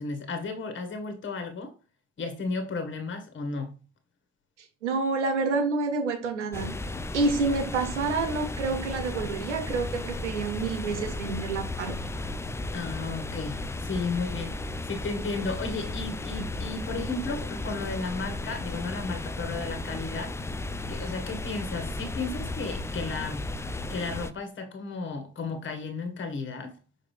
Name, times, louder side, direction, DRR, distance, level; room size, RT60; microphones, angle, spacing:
voice 1, 0.0-1.7 2.2-3.7 12.7-14.6 14.8-20.4 20.9-23.5 23.9-26.8, left 3 dB, 35° left, 1.6 m, -34 dB
voice 2, 4.8-6.7 7.1-12.0, right 3 dB, 80° right, 0.9 m, -28 dB
sound 1, 6.5-24.3, left 2 dB, 10° left, 0.5 m, -35 dB
6.5 x 4.7 x 3.2 m
figure-of-eight pair, 50°, 35 cm